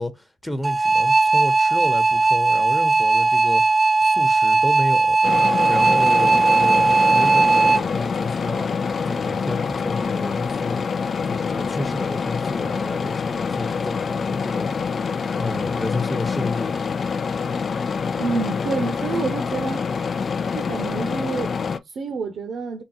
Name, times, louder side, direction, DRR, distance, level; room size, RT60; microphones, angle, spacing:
voice 1, 0.0-3.6 4.0-5.2 5.7-8.7 9.0-10.8 11.2-14.7 15.4-16.8, left 1 dB, 10° left, 1.1 m, -31 dB
sound 1, 0.6-7.8, right 3 dB, 30° right, 0.4 m, -18 dB
sound 2, 5.2-21.8, left 5 dB, 55° left, 0.4 m, -26 dB
voice 2, 18.2-19.8 20.5-22.8, right 4 dB, 65° right, 0.8 m, -28 dB
3.6 x 2.3 x 4.3 m
supercardioid pair, 55°, 0 cm